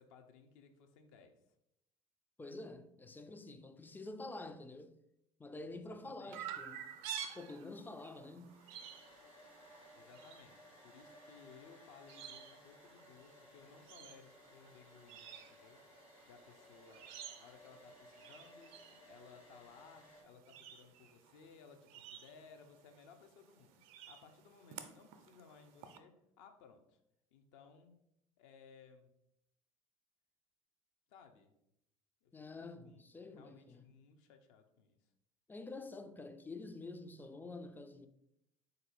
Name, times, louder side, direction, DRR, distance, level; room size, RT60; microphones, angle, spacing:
voice 1, 0.0-1.4 5.7-6.7 9.9-27.0 27.3-28.0 28.4-29.1 31.1-31.5 32.2-35.1, left 5 dB, 60° left, 0.6 m, -61 dB
voice 2, 2.4-5.0 5.4-6.9 7.3-8.6 32.3-33.9 35.5-38.1, left 2 dB, 10° left, 0.3 m, -48 dB
Chirp tweet, 6.3-26.0, right 9 dB, 60° right, 0.4 m, -52 dB
Domestic sounds home sounds, 8.4-20.2, left 1 dB, 90° left, 1.5 m, -60 dB
4.0 x 2.6 x 4.3 m
figure-of-eight pair, 65°, 17 cm